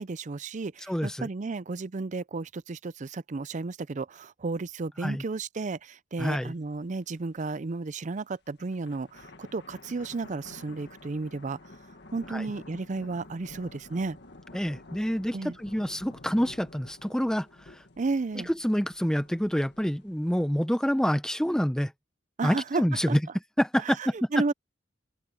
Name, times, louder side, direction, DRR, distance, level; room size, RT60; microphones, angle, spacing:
voice 1, 0.0-11.6 12.1-14.2 15.3-15.6 18.0-18.5 22.4-22.8 23.1-23.2 23.8-24.5, right 3 dB, 40° right, 0.5 m, -33 dB
voice 2, 0.9-1.3 5.0-5.2 6.2-6.5 12.3-12.5 14.5-17.8 18.5-21.9 22.4-23.2 23.6-24.3, equal, 5° left, 0.7 m, -27 dB
sound 1, 6.3-6.4 6.7-6.8 7.3-7.7 8.5-20.6, left 2 dB, 60° left, 1.9 m, -50 dB
open air
head